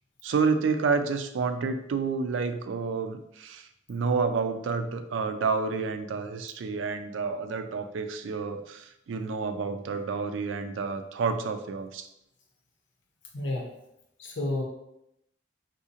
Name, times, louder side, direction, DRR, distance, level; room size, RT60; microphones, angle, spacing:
voice 1, 0.2-12.1, right 5 dB, 90° right, 8 dB, 0.4 m, -29 dB
voice 2, 13.3-13.6 14.2-14.6, left 2 dB, 70° left, 0 dB, 0.8 m, -30 dB
3.6 x 2.8 x 2.8 m, 0.81 s
head